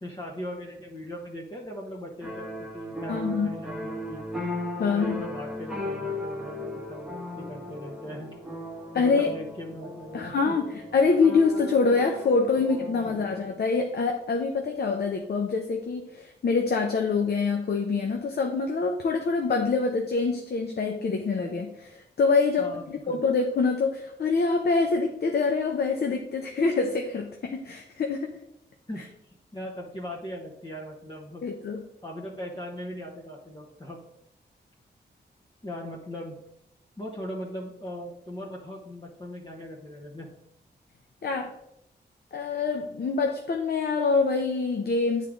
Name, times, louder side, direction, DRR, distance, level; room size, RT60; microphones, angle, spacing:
voice 1, 0.0-4.2 4.8-8.3 8.9-10.6 13.0-13.2 22.6-23.2 28.9-29.1 29.5-31.5 32.0-34.0 35.6-36.4 37.0-40.3, left 1 dB, 25° left, -3 dB, 1.1 m, -39 dB
sound 1, 2.2-13.5, left 1 dB, 5° right, 1.3 m, -37 dB
voice 2, 3.1-3.5 4.8-5.2 8.9-9.3 10.1-28.3 29.0-29.1 31.4-31.8 41.2-41.5 42.3-45.3, left 4 dB, 65° left, 3 dB, 0.7 m, -25 dB
8.4 x 3.6 x 3.7 m, 0.80 s
cardioid pair, 70°, 18 cm